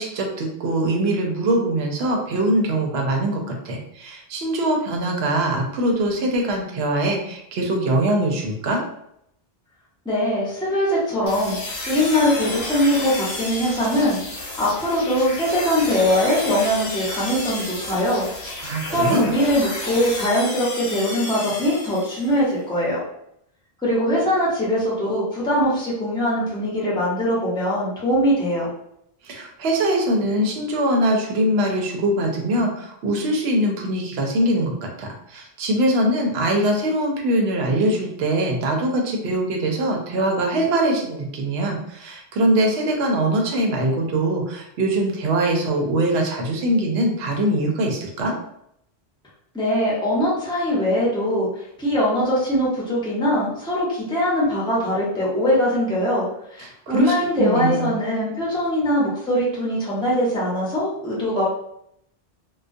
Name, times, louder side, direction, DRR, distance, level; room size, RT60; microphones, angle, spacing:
voice 1, 0.0-8.8 18.6-19.3 29.2-48.3 56.6-57.9, right 1 dB, 85° right, 1 dB, 0.9 m, -22 dB
voice 2, 10.0-18.3 18.9-23.0 23.8-28.7 49.5-56.2 56.5-61.4, equal, 5° left, -6 dB, 0.6 m, -22 dB
sound 1, 11.3-22.4, left 2 dB, 50° left, 0.7 m, -32 dB
2.3 x 2.2 x 2.5 m, 0.75 s
omnidirectional pair, 1.0 m